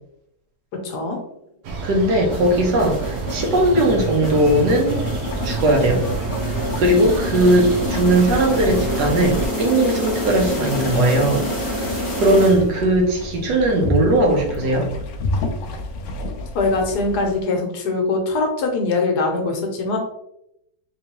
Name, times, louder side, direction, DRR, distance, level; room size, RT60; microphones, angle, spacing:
voice 1, 0.8-1.2 16.5-20.0, left 3 dB, 85° left, 2 dB, 1.4 m, -22 dB
sound 1, 1.6-9.5, right 3 dB, 65° right, 0.7 m, -28 dB
voice 2, 1.8-5.0 5.4-6.0 6.8-11.9 12.2-14.9, right 1 dB, 90° right, 2 dB, 1.4 m, -18 dB
sound 2, 2.3-13.0, equal, 15° left, 0.7 m, -28 dB
sound 3, 4.9-17.4, left 2 dB, 65° left, 0.7 m, -31 dB
3.5 x 3.2 x 2.9 m, 0.79 s
omnidirectional pair, 1.7 m